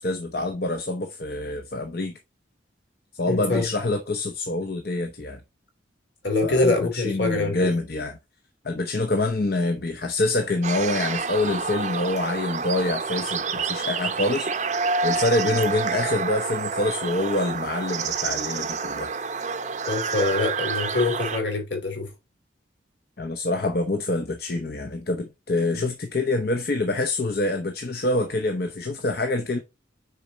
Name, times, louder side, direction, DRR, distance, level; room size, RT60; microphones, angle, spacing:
voice 1, 0.0-2.1 3.1-5.4 6.4-8.2 8.6-14.5 15.0-19.1 23.2-29.6, left 2 dB, 55° left, 0.8 m, -26 dB
voice 2, 3.3-3.7 6.2-7.7 19.8-22.1, left 3 dB, 70° left, 2.7 m, -24 dB
sound 1, 10.6-21.4, right 5 dB, 40° right, 0.6 m, -28 dB
6.6 x 4.5 x 3.9 m
head